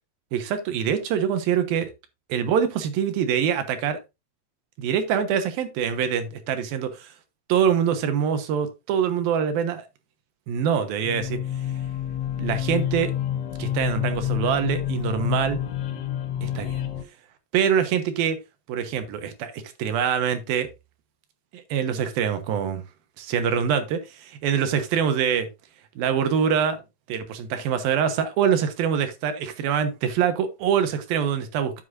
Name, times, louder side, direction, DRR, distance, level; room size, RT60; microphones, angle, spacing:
voice 1, 0.3-1.9 2.3-4.0 4.8-7.1 7.5-9.8 10.5-11.4 12.4-13.1 13.6-15.6 16.6-16.7 17.5-18.4 18.7-20.7 21.5-22.8 23.2-25.5 26.0-26.8 27.1-31.8, right 8 dB, 80° right, 2.9 m, -24 dB
sound 1, 11.0-17.0, left 11 dB, 85° left, 3.2 m, -28 dB
9.9 x 7.8 x 2.6 m
omnidirectional pair, 4.3 m